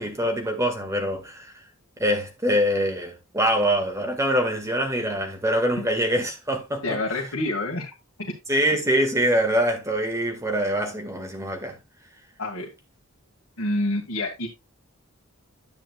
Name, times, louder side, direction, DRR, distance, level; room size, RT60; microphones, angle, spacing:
voice 1, 0.0-1.5 2.0-7.0 8.5-11.8, equal, 15° right, 1.8 m, -24 dB
voice 2, 6.8-7.9 8.2-8.3 12.4-12.7 13.6-14.5, left 1 dB, 65° left, 2.1 m, -27 dB
10.0 x 8.8 x 2.4 m
head